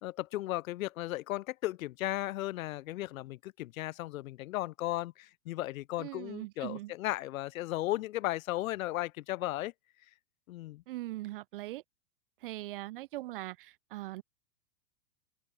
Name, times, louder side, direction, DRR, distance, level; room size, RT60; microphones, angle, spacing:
voice 1, 0.0-9.7 10.5-10.8, left 16 dB, 65° left, 0.5 m, -35 dB
voice 2, 6.0-6.9 10.9-11.8 12.4-14.2, right 17 dB, 40° right, 0.4 m, -41 dB
hypercardioid pair, 110°, 45 cm